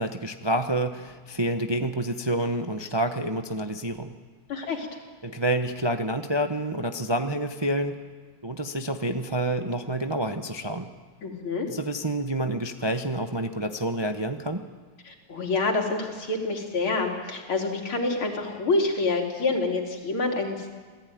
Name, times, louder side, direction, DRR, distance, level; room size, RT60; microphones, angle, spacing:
voice 1, 0.0-4.1 5.2-8.0 8.4-10.9 11.7-14.6, right 1 dB, 40° right, 6 dB, 0.3 m, -28 dB
voice 2, 4.5-4.9 11.2-11.7 15.0-20.7, left 3 dB, 75° left, 2 dB, 3.9 m, -27 dB
27.0 x 17.5 x 9.4 m, 1.5 s
omnidirectional pair, 2.3 m